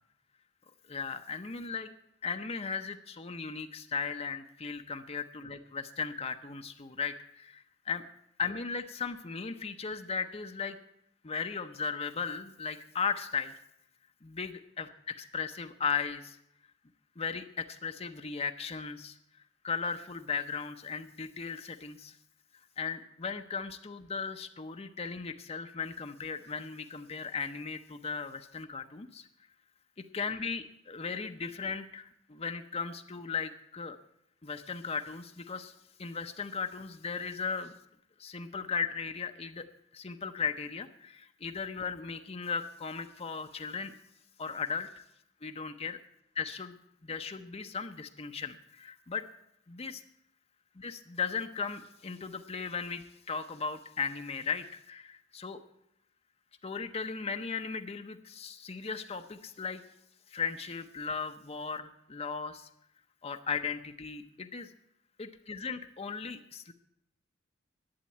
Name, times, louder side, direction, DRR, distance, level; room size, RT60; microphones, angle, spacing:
voice 1, 0.9-1.9 2.2-8.0 8.4-10.8 11.2-13.5 14.2-16.4 17.2-19.2 19.6-22.2 22.8-29.3 30.1-34.0 34.4-35.7 36.0-37.7 38.2-39.7 39.9-43.9 44.4-45.0 45.4-46.0 46.4-46.8 47.0-49.2 49.7-50.0 50.8-55.6 56.6-59.8 60.3-62.7 63.2-64.7 65.2-66.7, left 5 dB, 30° left, 7 dB, 0.6 m, -37 dB
11.5 x 8.2 x 8.5 m, 0.77 s
head